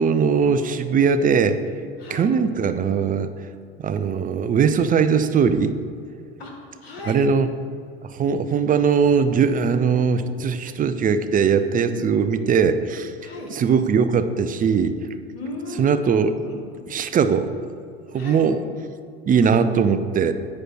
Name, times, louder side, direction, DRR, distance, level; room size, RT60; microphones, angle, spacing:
voice 1, 0.0-1.6 2.1-3.3 3.8-5.7 7.1-7.5 8.0-13.1 13.5-15.0 15.8-16.4 16.9-17.5 18.1-18.6 19.3-20.3, right 6 dB, 30° right, 10 dB, 0.6 m, -20 dB
voice 2, 2.0-2.3 6.4-7.2 13.2-13.5 15.3-16.6 18.1-18.4, left 2 dB, 90° left, 0 dB, 1.7 m, -36 dB
9.6 x 4.9 x 6.1 m, 2.4 s
hypercardioid pair, 85°, 30 cm